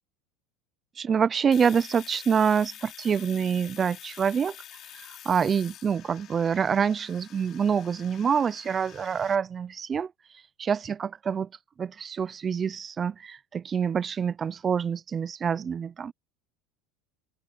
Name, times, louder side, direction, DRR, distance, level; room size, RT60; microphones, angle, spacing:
voice 1, 1.0-4.6 4.9-10.1 10.6-11.5 11.8-16.1, right 7 dB, 25° right, 0.4 m, -26 dB
Domestic sounds home sounds, 1.5-9.4, left 11 dB, 40° left, 5.3 m, -47 dB
open air
supercardioid pair, 140°, 0 cm